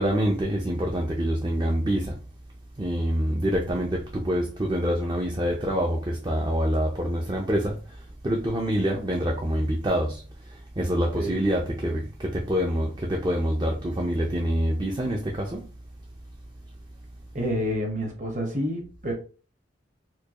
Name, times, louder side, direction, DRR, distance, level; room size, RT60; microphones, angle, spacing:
voice 1, 0.0-2.2 2.8-15.7, equal, 25° right, 0.5 m, -26 dB
voice 2, 17.3-19.1, equal, 45° right, 1.1 m, -28 dB
4.4 x 2.3 x 2.9 m
head